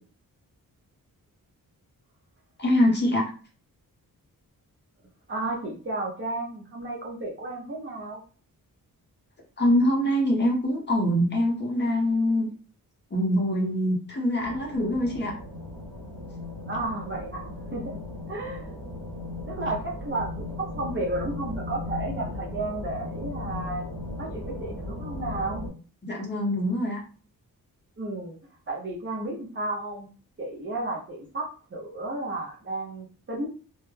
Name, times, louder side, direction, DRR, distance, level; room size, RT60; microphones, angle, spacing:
voice 1, 2.6-3.2 9.6-12.5 13.1-15.3 26.0-27.0, left 1 dB, 30° left, -1 dB, 0.6 m, -24 dB
voice 2, 5.3-8.2 16.7-18.0 18.3-18.7 19.5-23.9 24.2-25.6 28.0-28.4 28.7-30.1 30.4-33.5, right 2 dB, 35° right, -2 dB, 0.6 m, -33 dB
sound 1, 14.4-25.7, left 2 dB, 70° right, 0.9 m, -37 dB
2.2 x 2.0 x 3.1 m, 0.39 s
wide cardioid pair, 160°, 35 cm